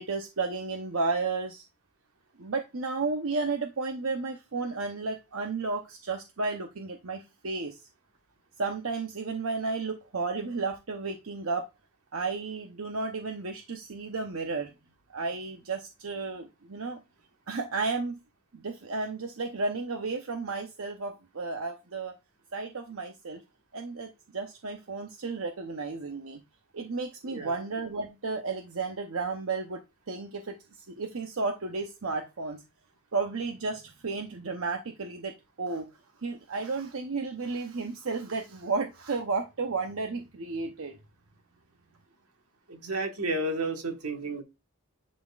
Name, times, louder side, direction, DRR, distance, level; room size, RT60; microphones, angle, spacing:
voice 1, 0.0-1.6 2.4-7.8 8.6-11.7 12.1-14.7 15.1-17.0 17.5-18.2 18.5-22.1 22.5-23.4 23.7-26.4 26.7-29.8 30.1-30.5 30.9-32.6 33.1-35.3 35.6-35.9 36.2-40.9, right 4 dB, 70° right, 4 dB, 0.8 m, -33 dB
voice 2, 27.3-27.6 42.7-44.4, right 2 dB, 90° right, 4 dB, 1.5 m, -32 dB
10.5 x 4.1 x 2.4 m, 0.24 s
head